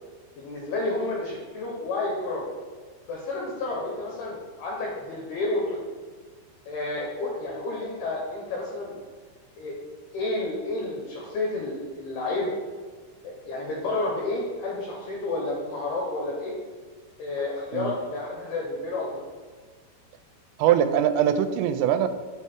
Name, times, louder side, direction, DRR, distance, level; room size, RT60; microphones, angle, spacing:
voice 1, 0.4-2.5 3.1-5.8 6.7-9.0 9.6-9.7 10.1-12.5 13.2-16.5 17.2-19.2, left 2 dB, 80° left, -2 dB, 2.3 m, -30 dB
voice 2, 20.6-22.1, right 10 dB, 90° right, 10 dB, 3.2 m, -22 dB
7.2 x 4.7 x 4.3 m, 1.5 s
omnidirectional pair, 5.8 m